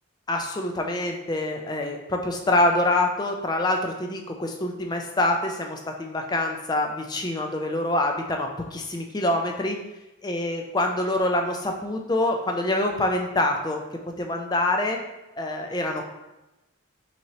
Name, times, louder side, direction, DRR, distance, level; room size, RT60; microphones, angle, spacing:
voice 1, 0.3-9.8 10.2-13.8 14.2-15.0 15.4-16.0, left 1 dB, 20° left, 3 dB, 0.4 m, -25 dB
5.5 x 3.0 x 2.9 m, 0.99 s
head